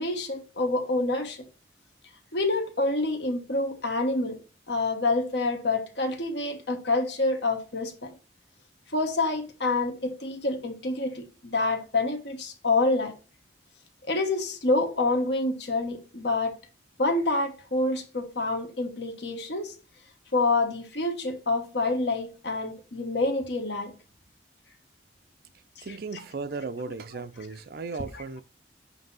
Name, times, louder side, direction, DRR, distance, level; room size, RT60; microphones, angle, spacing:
voice 1, 0.0-1.4 2.3-4.4 4.7-8.1 8.9-13.1 14.1-16.6 17.0-19.7 20.3-23.9 25.8-25.9, left 2 dB, 70° left, 1.2 m, -27 dB
voice 2, 25.8-28.4, right 4 dB, 55° right, 0.5 m, -36 dB
7.8 x 2.9 x 5.4 m
head